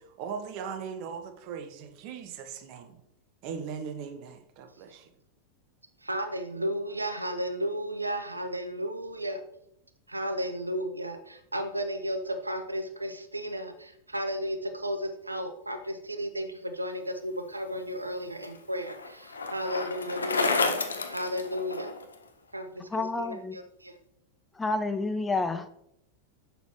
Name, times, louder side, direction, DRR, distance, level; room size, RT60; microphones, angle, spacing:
voice 1, 0.2-3.0 3.4-5.0, right 6 dB, 45° right, 8 dB, 0.7 m, -39 dB
voice 2, 6.0-9.4 10.1-20.7 21.1-21.9 22.5-23.9, equal, 85° right, 8 dB, 0.5 m, -34 dB
Bicycle, 17.7-22.2, left 4 dB, 75° left, 0.6 m, -31 dB
voice 3, 22.9-23.6 24.6-25.7, left 3 dB, 10° left, 10 dB, 0.4 m, -29 dB
6.8 x 6.1 x 2.9 m, 0.77 s
figure-of-eight pair, 90°, 0 cm